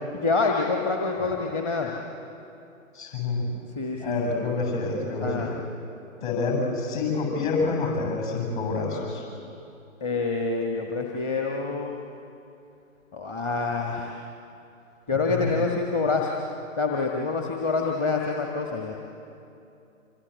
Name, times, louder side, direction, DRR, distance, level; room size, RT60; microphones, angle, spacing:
voice 1, 0.1-1.9 3.8-4.2 5.2-5.5 10.0-12.0 13.1-14.2 15.1-16.3 16.8-19.0, left 4 dB, 20° left, 1 dB, 1.5 m, -26 dB
voice 2, 2.9-3.5 4.0-5.6 6.2-9.2 15.1-15.7, left 3 dB, 35° left, 1 dB, 7.6 m, -28 dB
26.0 x 25.5 x 8.1 m, 2.7 s
figure-of-eight pair, 130°, 40 cm